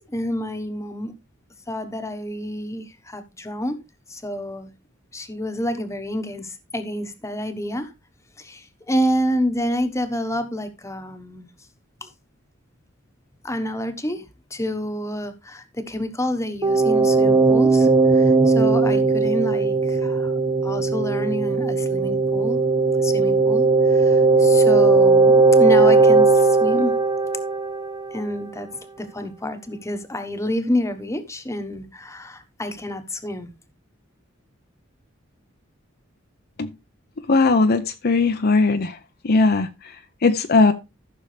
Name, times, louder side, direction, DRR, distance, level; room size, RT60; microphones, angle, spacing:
voice 1, 0.1-1.1 1.7-3.8 4.1-4.7 5.1-7.9 8.4-11.5 12.0-12.1 13.4-14.2 14.5-20.3 20.6-22.6 23.0-26.9 28.1-28.7 29.0-33.5, equal, 15° left, 1.2 m, -28 dB
sound 1, 16.6-28.2, right 3 dB, 20° right, 0.6 m, -17 dB
voice 2, 37.3-39.0 39.2-40.7, left 3 dB, 50° left, 0.7 m, -19 dB
14.0 x 6.3 x 3.3 m
head